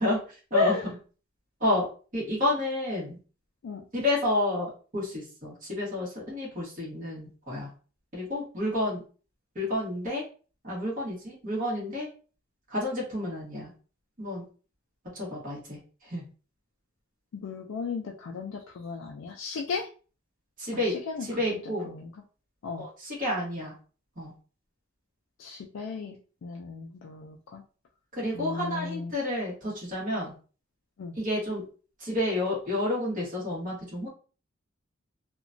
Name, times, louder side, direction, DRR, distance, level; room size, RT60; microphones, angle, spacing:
voice 1, 0.5-0.9 3.6-3.8 17.3-19.9 20.7-22.1 22.6-22.9 25.4-26.2 26.4-27.6 28.3-29.1 31.0-31.1, left 4 dB, 75° left, 1 dB, 0.3 m, -34 dB
voice 2, 2.1-3.2 3.9-7.7 8.1-9.0 9.5-10.2 10.6-12.1 12.7-13.7 14.2-14.4 15.1-15.8 16.1-16.2 20.6-20.9 21.2-21.9 22.8-23.7 24.2-24.3 28.2-30.3 31.2-31.6 32.0-34.1, left 1 dB, 40° right, -5 dB, 1.3 m, -30 dB
2.9 x 2.2 x 2.5 m, 0.37 s
head